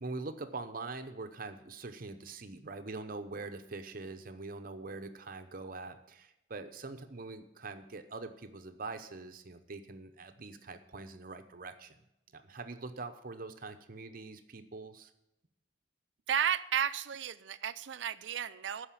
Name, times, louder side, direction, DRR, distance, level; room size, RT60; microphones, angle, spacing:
voice 1, 0.0-12.0 12.3-15.1, right 3 dB, 50° right, 9 dB, 0.8 m, -43 dB
voice 2, 16.3-18.9, right 8 dB, 75° right, 14 dB, 0.5 m, -33 dB
13.5 x 5.0 x 8.5 m, 0.87 s
head